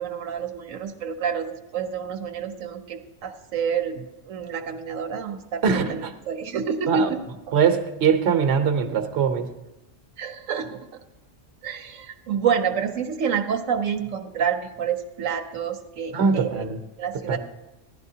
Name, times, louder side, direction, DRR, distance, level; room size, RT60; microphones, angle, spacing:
voice 1, 0.0-7.2 7.5-7.6 10.2-10.9 11.6-16.6 17.0-17.4, right 7 dB, 85° right, 5 dB, 1.1 m, -28 dB
voice 2, 5.6-6.1 6.9-7.1 7.5-9.5 16.1-16.8 17.3-17.4, right 6 dB, 60° right, 6 dB, 1.1 m, -22 dB
15.5 x 11.0 x 2.8 m, 0.97 s
omnidirectional pair, 1.3 m